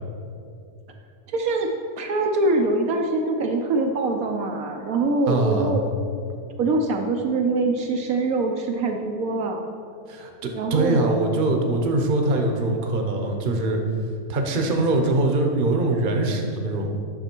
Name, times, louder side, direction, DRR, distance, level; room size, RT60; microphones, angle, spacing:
voice 1, 1.3-1.7 2.0-5.8 6.6-9.7 10.5-11.1, right 2 dB, 70° right, 3 dB, 1.1 m, -24 dB
voice 2, 5.3-5.7 10.1-13.8 14.3-16.9, right 2 dB, 40° right, 3 dB, 1.0 m, -23 dB
9.8 x 6.3 x 4.5 m, 2.5 s
omnidirectional pair, 1.6 m